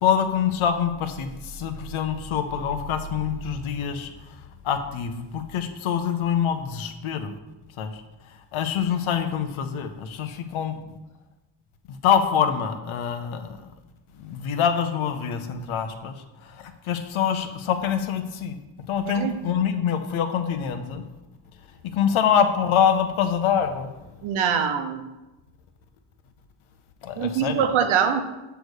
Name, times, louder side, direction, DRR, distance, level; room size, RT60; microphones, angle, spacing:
voice 1, 0.0-4.4 4.6-7.3 7.8-8.0 8.3-10.8 11.9-13.7 14.2-18.6 18.9-21.0 21.8-24.0 27.0-27.6, left 8 dB, 85° left, 8 dB, 0.9 m, -25 dB
voice 2, 24.2-25.0 27.2-28.2, right 7 dB, 90° right, 7 dB, 0.9 m, -23 dB
7.9 x 3.4 x 6.3 m, 1.1 s
cardioid pair, 150°, 47 cm